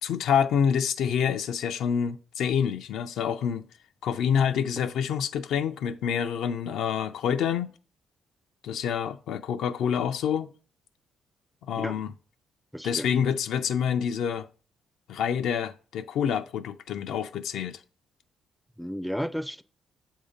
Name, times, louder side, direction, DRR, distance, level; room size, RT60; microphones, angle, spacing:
voice 1, 0.0-3.7 4.0-7.7 8.6-10.5 11.7-12.1 12.8-14.5 15.1-17.8, left 8 dB, 80° left, 0.4 m, -27 dB
voice 2, 12.7-13.1 18.8-19.6, equal, ahead, 0.4 m, -33 dB
7.1 x 2.7 x 5.0 m
cardioid pair, 90°, 0 cm